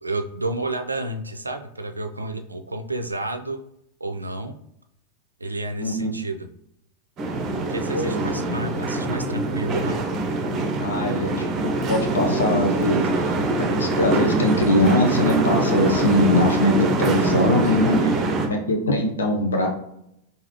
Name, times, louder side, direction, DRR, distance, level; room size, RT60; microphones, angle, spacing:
voice 1, 0.0-3.6 4.0-4.6 5.4-6.5 7.7-10.0 17.9-18.1, right 2 dB, 80° right, 7 dB, 0.3 m, -30 dB
voice 2, 5.8-6.1 7.9-8.2 10.8-13.4 13.8-18.2 18.4-19.7, left 1 dB, 70° left, 2 dB, 0.7 m, -22 dB
sound 1, 7.2-18.5, right 2 dB, 30° right, 0.6 m, -23 dB
3.9 x 2.7 x 2.9 m, 0.78 s
figure-of-eight pair, 90°, 0 cm